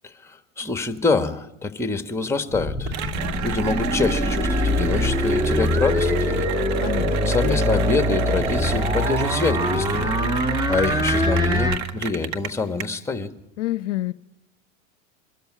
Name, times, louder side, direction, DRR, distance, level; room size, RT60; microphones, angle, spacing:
voice 1, 0.0-3.0 3.4-6.5 7.2-10.1 10.7-13.3, left 3 dB, 5° left, 8 dB, 1.6 m, -26 dB
sound 1, 2.5-11.8, left 1 dB, 10° right, 1.8 m, -23 dB
Cheering / Applause, 2.9-12.8, right 9 dB, 55° right, 1.6 m, -31 dB
voice 2, 6.8-7.3 13.6-14.1, left 16 dB, 65° left, 17 dB, 0.7 m, -28 dB
23.5 x 13.5 x 9.7 m, 0.91 s
hypercardioid pair, 90°, 39 cm